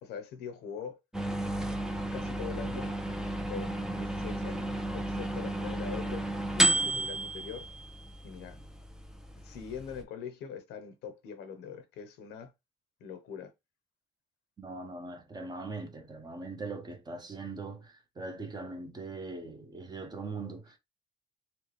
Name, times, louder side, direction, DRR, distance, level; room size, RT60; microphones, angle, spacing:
voice 1, 0.0-1.0 2.1-2.9 3.5-7.7 8.2-8.6 9.4-12.5 13.0-13.5, left 7 dB, 85° left, 0.9 m, -42 dB
sound 1, 1.1-10.0, right 1 dB, 5° right, 0.6 m, -33 dB
voice 2, 14.6-20.8, right 3 dB, 25° right, 0.9 m, -41 dB
4.3 x 2.3 x 3.2 m
cardioid pair, 110°, 17 cm